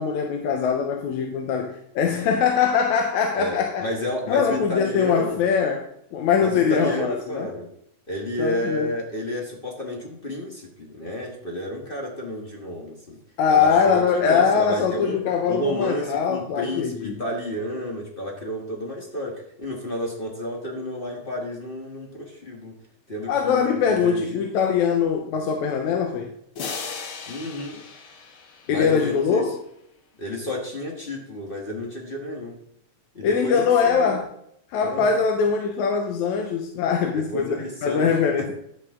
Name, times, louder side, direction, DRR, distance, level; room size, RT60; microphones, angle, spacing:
voice 1, 0.0-3.9 4.3-5.8 6.1-7.5 8.4-8.9 13.4-17.2 23.3-26.3 28.7-29.5 33.2-34.2 34.7-38.5, left 6 dB, 75° left, 3 dB, 2.2 m, -22 dB
voice 2, 3.4-5.4 6.4-7.7 8.1-13.2 13.5-15.2 15.5-22.8 23.1-24.5 27.3-27.8 28.7-29.5 30.2-32.6 33.1-34.2 34.8-35.2 37.1-38.5, left 1 dB, 35° left, 0 dB, 0.9 m, -31 dB
sound 1, 26.6-29.2, left 5 dB, 60° left, 1.6 m, -37 dB
11.5 x 8.1 x 3.7 m, 0.74 s
omnidirectional pair, 3.4 m